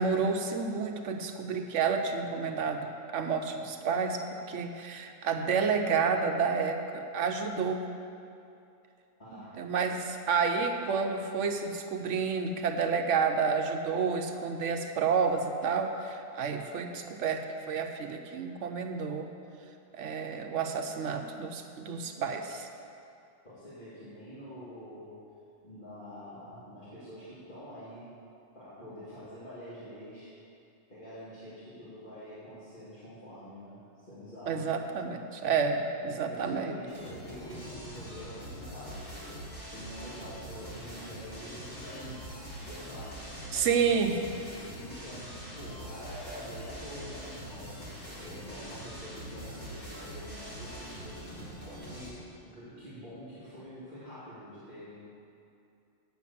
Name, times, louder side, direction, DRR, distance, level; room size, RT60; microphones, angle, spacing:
voice 1, 0.0-7.8 9.3-17.4 17.7-19.3 19.9-22.7 34.5-36.8 43.5-44.2, right 5 dB, 75° right, 5 dB, 1.0 m, -30 dB
voice 2, 9.2-9.6 23.4-25.3 25.6-28.1 28.5-30.3 30.9-34.7 35.9-43.3 43.7-44.1 44.8-47.8 48.1-55.1, equal, 40° left, -13 dB, 2.6 m, -46 dB
sound 1, 36.9-52.1, equal, 65° left, 2.8 m, -43 dB
8.4 x 6.5 x 8.4 m, 2.6 s
omnidirectional pair, 1.3 m